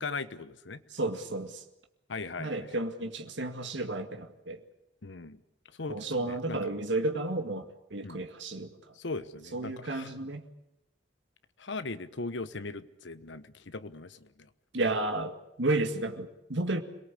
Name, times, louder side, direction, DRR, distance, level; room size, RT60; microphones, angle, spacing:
voice 1, 0.0-0.8 2.1-2.7 5.0-5.4 5.8-6.6 8.0-8.2 8.9-10.1 11.6-14.5, left 3 dB, 75° left, 13 dB, 1.1 m, -39 dB
voice 2, 0.9-1.6 2.4-4.6 5.9-8.8 9.5-10.4 14.7-16.8, right 2 dB, 75° right, 5 dB, 2.0 m, -32 dB
27.0 x 18.5 x 8.5 m, 0.87 s
head